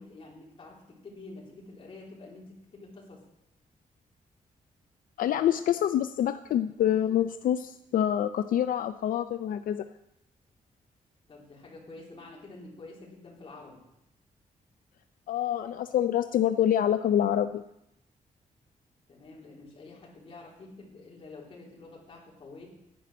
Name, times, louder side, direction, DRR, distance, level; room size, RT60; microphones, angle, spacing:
voice 1, 0.0-3.2 11.3-13.8 19.1-22.7, left 3 dB, 40° left, -3 dB, 3.4 m, -48 dB
voice 2, 5.2-9.9 15.3-17.6, left 10 dB, 80° left, 10 dB, 0.4 m, -26 dB
10.0 x 9.5 x 6.1 m, 0.84 s
wide cardioid pair, 160°, 14 cm